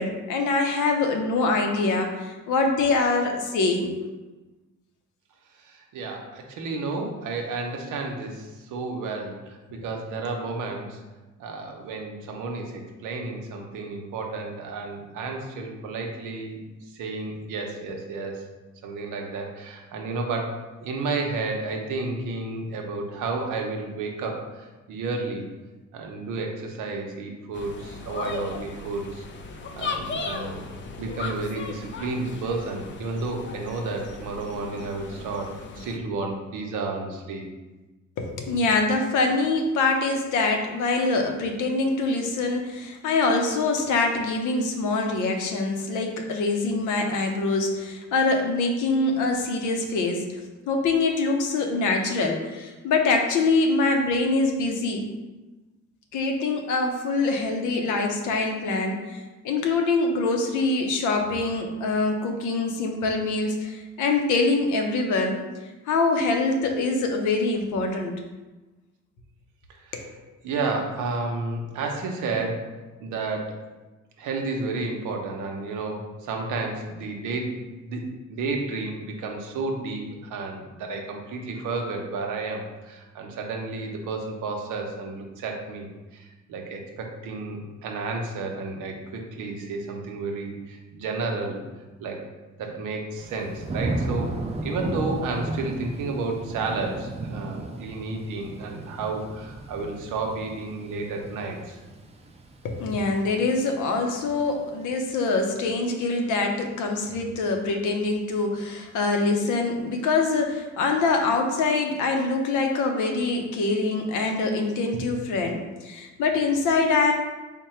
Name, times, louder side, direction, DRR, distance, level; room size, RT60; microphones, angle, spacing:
voice 1, 0.0-3.9 38.2-50.2 50.7-55.0 56.1-65.4 65.9-68.1 69.9-70.1 102.6-117.1, left 3 dB, 80° left, 3 dB, 0.7 m, -24 dB
voice 2, 5.6-11.0 11.4-16.6 16.9-18.4 18.8-25.5 25.9-29.2 29.7-30.7 31.0-37.5 70.4-73.6 74.2-77.6 77.8-78.0 78.3-85.9 86.1-91.6 92.0-92.2 92.6-94.4 94.6-101.8, right 3 dB, 85° right, 1 dB, 0.7 m, -31 dB
sound 1, 27.5-36.0, left 4 dB, 40° left, 0.4 m, -36 dB
Thunder / Rain, 93.2-104.1 104.5-105.0, right 2 dB, 20° right, 0.4 m, -35 dB
3.6 x 2.2 x 4.2 m, 1.2 s
cardioid pair, 90°, 30 cm